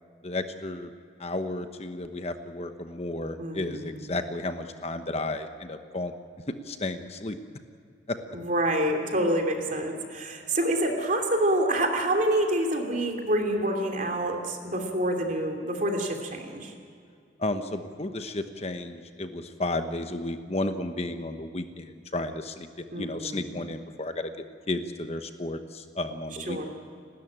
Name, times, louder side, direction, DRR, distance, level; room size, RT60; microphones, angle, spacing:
voice 1, 0.2-0.9 1.2-6.1 6.6-7.4 8.1-8.2 17.4-24.3 24.7-26.6, left 2 dB, 35° left, 8 dB, 1.0 m, -33 dB
voice 2, 3.4-4.0 8.3-16.7 22.9-23.5 26.5-26.6, right 1 dB, 45° right, 3 dB, 3.0 m, -27 dB
30.0 x 13.0 x 9.0 m, 2.2 s
head